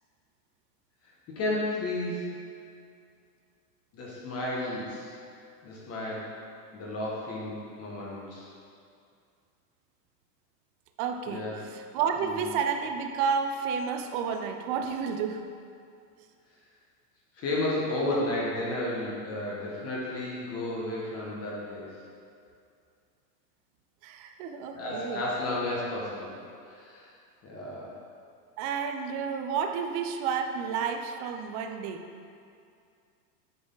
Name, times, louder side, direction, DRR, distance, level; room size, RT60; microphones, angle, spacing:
voice 1, 1.3-2.3 3.9-5.1 5.6-6.3 6.7-8.5 11.3-11.6 12.2-12.4 17.4-21.9 24.7-26.3 26.7-27.1 27.4-27.9, left 1 dB, 30° left, -5 dB, 1.4 m, -32 dB
voice 2, 11.0-15.5 24.0-25.2 28.6-32.0, right 6 dB, 40° right, 6 dB, 0.6 m, -31 dB
7.9 x 4.9 x 3.9 m, 2.4 s
supercardioid pair, 130°, 49 cm